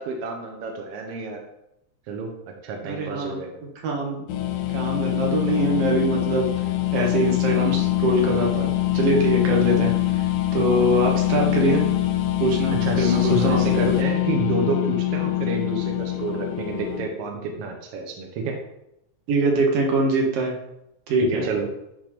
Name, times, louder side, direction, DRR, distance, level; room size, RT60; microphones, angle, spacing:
voice 1, 0.0-1.4 2.1-2.3 2.6-3.6 12.7-18.6 21.2-21.7, right 4 dB, 75° right, 2 dB, 1.4 m, -29 dB
voice 2, 2.8-3.4 3.8-4.2 4.7-6.5 6.9-10.0 10.5-11.8 12.4-13.6 19.3-20.6 21.1-21.5, right 1 dB, 60° right, 0 dB, 1.8 m, -23 dB
sound 1, 4.3-17.1, left 15 dB, 90° left, 2.2 m, -23 dB
10.5 x 4.4 x 3.0 m, 0.86 s
omnidirectional pair, 3.7 m